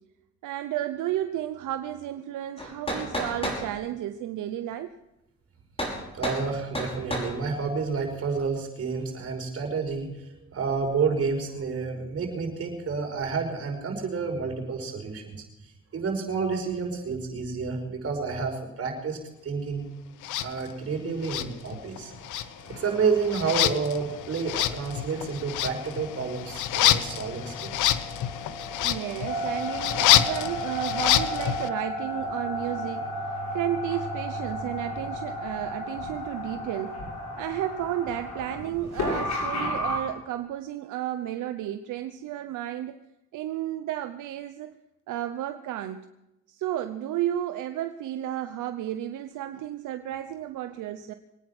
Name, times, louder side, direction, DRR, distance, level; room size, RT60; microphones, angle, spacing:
voice 1, 0.4-4.9 28.8-37.0 37.4-43.0 43.3-44.7 45.1-46.1 46.5-51.1, right 12 dB, 85° right, 9 dB, 0.8 m, -32 dB
sound 1, 2.6-3.6 5.8-6.0 6.2-6.4 6.7-7.3, equal, 20° left, 5.5 m, -30 dB
voice 2, 6.1-15.4 15.9-19.8 20.4-22.1 22.4-28.0, right 5 dB, 50° right, 1 dB, 5.3 m, -30 dB
sound 2, 20.2-20.5 21.2-22.0 22.2-31.7, left 12 dB, 85° left, 0.8 m, -27 dB
sound 3, 22.0-40.0, equal, 65° left, 7.7 m, -34 dB
24.0 x 9.7 x 6.0 m, 0.92 s
cardioid pair, 90°, 30 cm